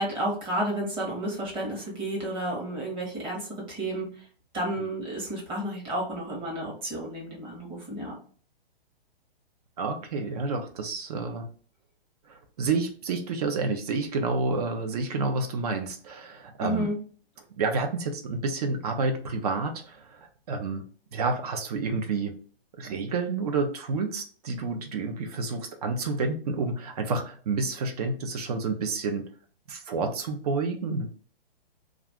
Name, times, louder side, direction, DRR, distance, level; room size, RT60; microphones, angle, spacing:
voice 1, 0.0-4.1 4.5-8.1 16.6-17.0, right 1 dB, 15° right, -2 dB, 0.9 m, -31 dB
voice 2, 9.8-11.5 12.3-16.9 17.6-20.9 21.1-22.3 22.8-29.3 29.7-31.1, right 3 dB, 40° right, 5 dB, 0.5 m, -29 dB
2.4 x 2.3 x 3.4 m, 0.44 s
hypercardioid pair, 145°, 30 cm